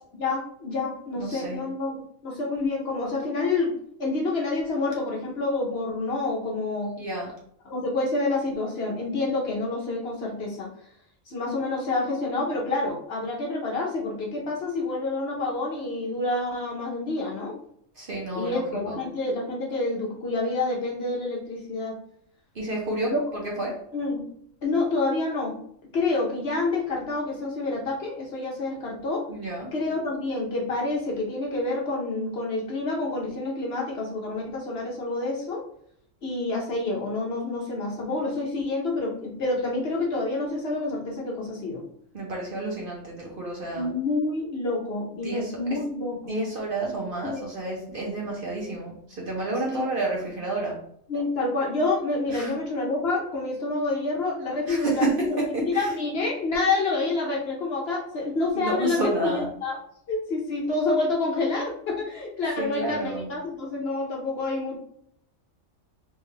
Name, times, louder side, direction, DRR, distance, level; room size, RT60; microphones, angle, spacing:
voice 1, 0.1-2.0 2.2-3.7 4.0-6.9 7.7-10.7 11.3-17.5 18.3-22.0 23.1-23.2 23.9-24.2 24.6-25.6 25.9-29.2 29.7-35.6 36.2-41.8 43.7-46.4 47.2-47.5 49.7-49.8 51.1-59.8 60.1-64.8, left 3 dB, 55° left, -1 dB, 0.9 m, -28 dB
voice 2, 1.2-1.6 7.0-7.4 18.0-19.0 22.5-23.8 29.3-29.7 42.1-43.9 45.2-45.6 46.3-50.8 52.3-52.5 54.7-55.9 58.5-59.5 62.6-63.3, right 2 dB, 50° right, -2 dB, 0.7 m, -30 dB
3.5 x 2.3 x 3.1 m, 0.67 s
omnidirectional pair, 1.4 m